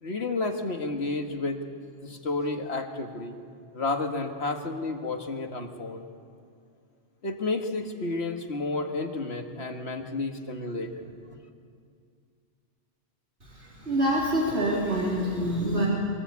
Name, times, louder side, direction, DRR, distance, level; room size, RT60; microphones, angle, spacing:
voice 1, 0.0-1.6 2.0-3.4 3.7-6.0 7.2-11.4, left 3 dB, 65° left, 4 dB, 2.0 m, -31 dB
voice 2, 13.4-15.9, right 1 dB, 65° right, -5 dB, 4.0 m, -26 dB
24.5 x 18.5 x 8.3 m, 2.3 s
omnidirectional pair, 1.2 m